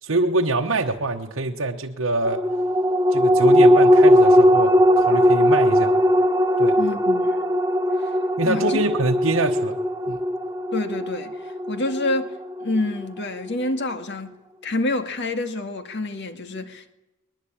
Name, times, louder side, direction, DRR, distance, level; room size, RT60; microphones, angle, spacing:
voice 1, 0.0-2.4 3.1-5.9 6.6-6.8 8.4-9.8 10.1-10.2, right 2 dB, 65° right, 1.1 m, -24 dB
sound 1, 2.2-13.1 13.4-13.5, equal, 15° right, 1.3 m, -18 dB
voice 2, 6.8-7.4 8.0-8.1 8.4-8.8 10.7-16.9, left 2 dB, 55° left, 2.0 m, -28 dB
21.0 x 21.0 x 8.7 m
head